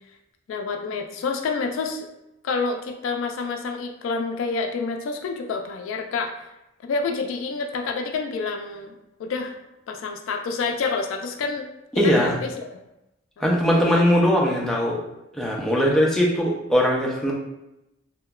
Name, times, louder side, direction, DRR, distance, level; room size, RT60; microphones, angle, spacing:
voice 1, 0.5-2.1 2.4-6.3 6.8-8.9 9.2-9.5 9.9-11.7 12.0-12.8 13.4-14.0 15.8-16.0, left 4 dB, 85° left, 4 dB, 0.3 m, -28 dB
voice 2, 12.0-12.4 13.4-15.0 15.3-17.3, equal, ahead, -3 dB, 0.4 m, -20 dB
2.9 x 2.1 x 2.3 m, 0.91 s
head